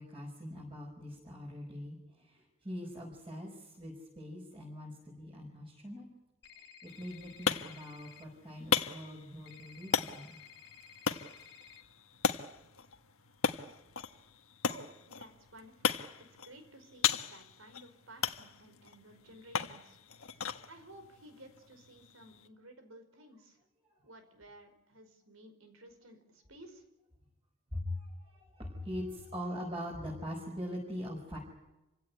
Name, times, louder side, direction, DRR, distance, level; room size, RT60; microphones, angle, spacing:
voice 1, 0.0-6.1 6.5-10.4 27.7-31.4, equal, 25° right, -4 dB, 5.8 m, -42 dB
sound 1, 6.4-8.2 9.5-11.8, left 7 dB, 55° left, 1.8 m, -55 dB
sound 2, 6.9-22.5, left 6 dB, 85° left, 1.4 m, -37 dB
voice 2, 14.7-20.0 20.7-23.6 24.0-26.8, right 1 dB, 80° right, 7 dB, 5.1 m, -55 dB
28.0 x 17.0 x 9.8 m, 0.98 s
head